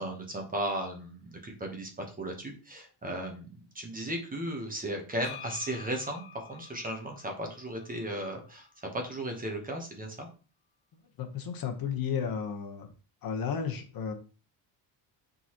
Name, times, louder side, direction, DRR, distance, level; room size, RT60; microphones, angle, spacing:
voice 1, 0.0-10.3, right 1 dB, 20° right, 2 dB, 1.1 m, -36 dB
sound 1, 5.2-9.0, left 8 dB, 75° left, 1.0 m, -50 dB
voice 2, 11.2-12.9 13.2-14.1, left 7 dB, 45° left, 4 dB, 1.1 m, -33 dB
9.0 x 4.0 x 3.0 m, 0.36 s
cardioid pair, 170°, 47 cm